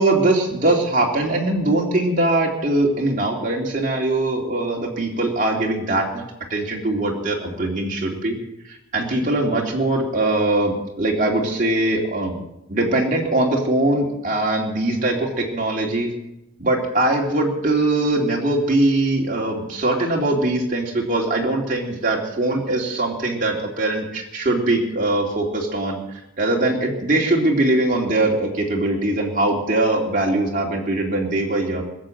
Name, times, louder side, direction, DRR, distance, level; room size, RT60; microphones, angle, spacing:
voice 1, 0.0-6.2 6.5-8.4 8.6-12.4 12.7-16.1 16.6-26.0 26.4-31.9, right 2 dB, 45° right, -1 dB, 2.7 m, -21 dB
20.5 x 8.8 x 7.8 m, 0.89 s
head